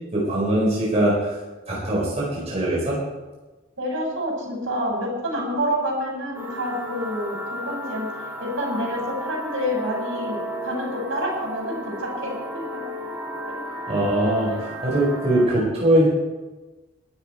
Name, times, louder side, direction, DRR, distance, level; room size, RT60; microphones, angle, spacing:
voice 1, 0.1-1.3 1.7-3.0 13.9-16.1, right 1 dB, 30° right, -5 dB, 4.6 m, -21 dB
voice 2, 3.8-8.1 8.4-10.4 10.6-12.8 13.9-14.0 14.5-14.6, equal, 70° right, -1 dB, 6.1 m, -28 dB
sound 1, 6.3-15.5, equal, 15° right, 3.0 m, -34 dB
21.5 x 12.0 x 4.5 m, 1.2 s
head